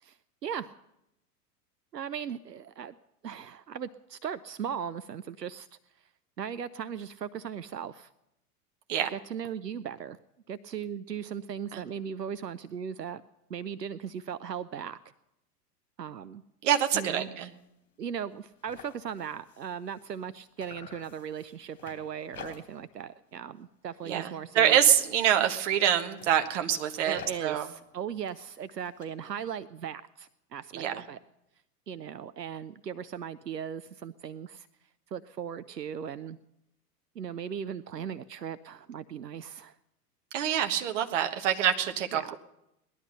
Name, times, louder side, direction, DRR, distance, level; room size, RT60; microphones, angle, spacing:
voice 1, 0.0-0.8 1.9-2.9 3.2-5.7 6.4-8.1 9.1-10.2 10.5-13.2 13.5-15.0 16.0-16.4 16.9-17.4 18.0-24.8 27.0-31.2 31.9-34.7 35.1-36.4 37.2-39.8 42.1-42.4, right 8 dB, 85° right, 14 dB, 0.6 m, -38 dB
voice 2, 16.6-17.5 24.0-27.7 30.7-30.9 40.3-42.4, right 9 dB, 50° right, 7 dB, 1.4 m, -26 dB
sound 1, 17.4-17.7 18.0-18.1 18.3-20.3 20.6-22.9 23.3-23.6 24.0-25.5 26.0-29.1, left 7 dB, 60° left, 3.3 m, -51 dB
18.5 x 12.0 x 5.6 m, 0.86 s
figure-of-eight pair, 95°, 48 cm